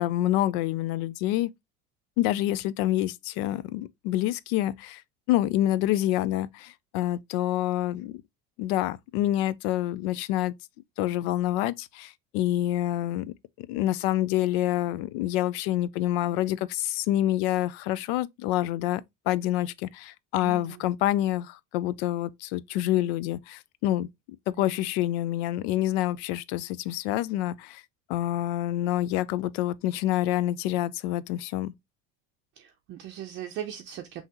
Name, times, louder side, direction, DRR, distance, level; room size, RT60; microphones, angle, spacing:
voice 1, 0.0-1.5 2.2-5.0 5.3-8.2 8.6-10.5 11.0-24.1 24.5-27.8 28.1-31.7, left 14 dB, 90° left, 0.5 m, -27 dB
voice 2, 20.4-20.8 24.6-24.7 32.6-34.2, right 10 dB, 40° right, 0.5 m, -39 dB
5.7 x 2.8 x 2.8 m
cardioid pair, 165°, 30 cm